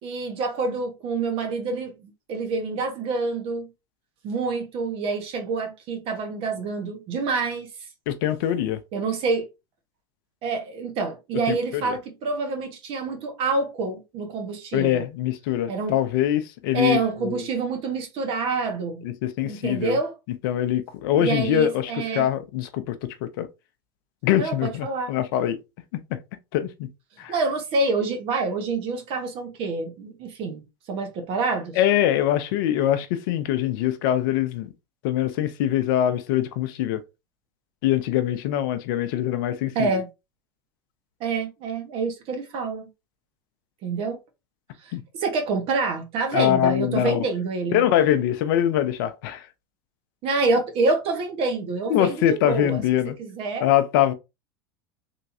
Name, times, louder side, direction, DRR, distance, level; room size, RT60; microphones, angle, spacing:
voice 1, 0.0-3.7 4.2-7.7 8.9-9.4 10.4-15.0 15.7-16.0 16.7-19.0 19.4-20.1 21.2-22.3 24.4-25.1 27.3-31.7 39.7-40.1 41.2-42.9 43.8-44.2 44.8-47.8 50.2-52.8 53.2-53.7, right 3 dB, 50° right, 1.3 m, -27 dB
voice 2, 8.1-8.8 11.5-11.9 14.7-17.4 19.0-20.0 20.4-23.5 24.2-25.6 25.9-26.2 26.5-26.7 27.2-27.3 31.8-34.7 35.0-37.0 37.8-39.9 44.9-45.0 46.3-47.2 47.7-49.4 51.9-53.2 53.6-54.1, left 11 dB, 65° left, 0.6 m, -23 dB
3.4 x 3.0 x 2.7 m
hypercardioid pair, 90°, 12 cm